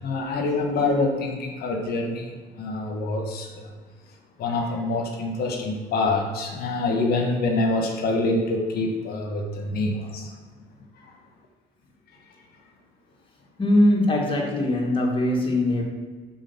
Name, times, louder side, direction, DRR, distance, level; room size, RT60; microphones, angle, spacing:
voice 1, 0.0-3.6 4.4-10.3, left 2 dB, 65° left, 3 dB, 1.2 m, -26 dB
voice 2, 13.6-15.8, left 1 dB, 30° left, 0 dB, 1.7 m, -21 dB
6.2 x 4.0 x 5.6 m, 1.5 s
cardioid pair, 110°, 17 cm